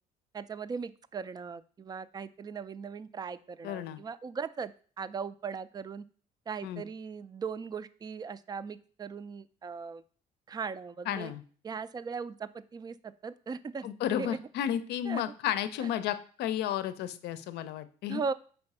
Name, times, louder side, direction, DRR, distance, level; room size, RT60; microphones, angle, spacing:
voice 1, 0.3-4.7 5.0-6.0 6.5-10.0 10.5-11.3 11.6-13.9 14.2-14.4 15.1-15.2 15.8-15.9 18.1-18.3, right 5 dB, 25° right, 15 dB, 0.3 m, -38 dB
voice 2, 3.6-4.0 6.6-6.8 11.1-11.4 13.8-18.2, left 10 dB, 80° left, 13 dB, 0.6 m, -33 dB
4.8 x 4.4 x 5.4 m, 0.43 s
cardioid pair, 110°, 17 cm